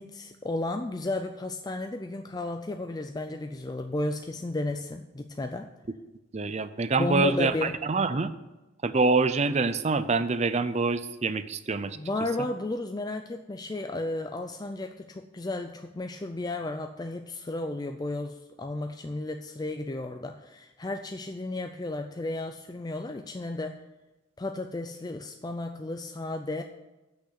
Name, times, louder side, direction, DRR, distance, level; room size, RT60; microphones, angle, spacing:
voice 1, 0.0-5.7 7.0-7.8 12.0-23.8 24.4-26.6, left 2 dB, 20° left, 6 dB, 0.4 m, -33 dB
voice 2, 6.3-7.5 7.8-8.3 8.8-12.0, right 3 dB, 35° right, 12 dB, 0.5 m, -25 dB
8.1 x 6.5 x 8.2 m, 1.1 s
head